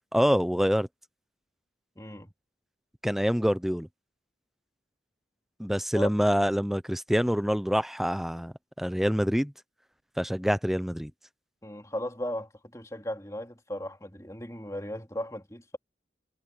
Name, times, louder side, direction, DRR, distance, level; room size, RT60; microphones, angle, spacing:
voice 1, 0.1-0.9 3.0-3.9 5.6-9.5 10.2-11.1, equal, ahead, 0.7 m, -26 dB
voice 2, 2.0-2.3 5.9-6.1 11.6-15.8, left 1 dB, 15° left, 3.6 m, -36 dB
head